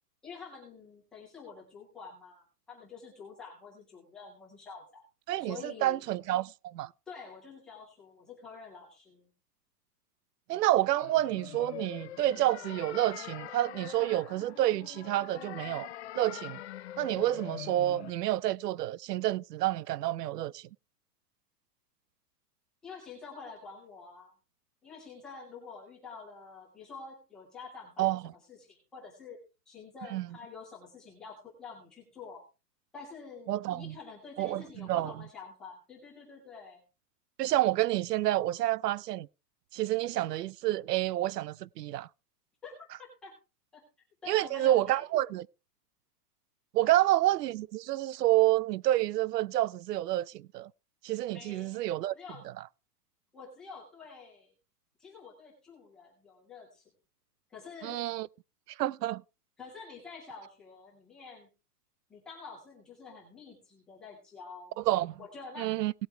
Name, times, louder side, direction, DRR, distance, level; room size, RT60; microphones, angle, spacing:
voice 1, 0.2-5.0 5.4-6.1 7.1-9.3 22.8-24.3 24.8-29.4 29.7-32.4 32.9-36.8 42.6-43.3 43.7-43.8 44.2-45.0 46.8-47.1 51.3-52.4 53.3-54.5 55.0-56.8 57.5-58.0 59.6-61.5 62.1-64.8 65.2-65.8, left 5 dB, ahead, 0.5 m, -48 dB
voice 2, 5.3-6.9 10.5-15.9 16.2-16.6 17.0-20.6 28.0-28.2 30.1-30.3 33.5-33.9 34.4-35.1 37.4-39.3 39.7-42.1 44.3-45.4 46.7-50.7 51.0-52.1 57.8-58.3 58.8-59.2 64.9-65.1 65.6-65.9, right 15 dB, 90° right, 0.6 m, -29 dB
sound 1, 11.0-18.1, left 12 dB, 45° left, 0.6 m, -44 dB
17.5 x 8.0 x 3.3 m
supercardioid pair, 175°, 46 cm